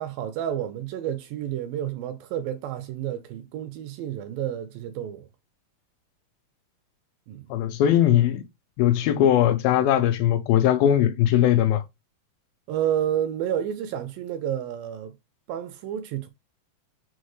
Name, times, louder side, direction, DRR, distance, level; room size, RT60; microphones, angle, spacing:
voice 1, 0.0-5.3 7.3-7.5 12.7-15.1 15.5-16.3, right 10 dB, 80° right, 2.1 m, -30 dB
voice 2, 7.5-8.4 8.8-11.8, left 11 dB, 80° left, 2.2 m, -20 dB
6.3 x 2.1 x 3.0 m
omnidirectional pair, 4.2 m